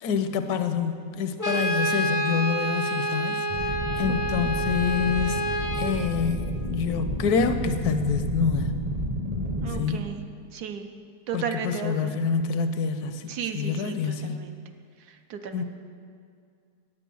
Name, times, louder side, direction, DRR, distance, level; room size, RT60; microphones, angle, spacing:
voice 1, 0.0-3.4 4.0-5.4 5.8-8.7 9.7-10.0 11.3-14.5 15.5-15.6, left 6 dB, 75° left, 9 dB, 1.1 m, -27 dB
Brass instrument, 1.4-6.0, right 1 dB, 20° left, 0.5 m, -28 dB
sound 1, 3.5-9.8, equal, 25° right, 0.7 m, -30 dB
voice 2, 9.6-10.2 10.5-10.9 11.3-12.1 13.3-14.6 15.3-15.6, right 7 dB, 70° right, 6 dB, 1.2 m, -34 dB
8.6 x 8.4 x 6.9 m, 2.2 s
omnidirectional pair, 1.8 m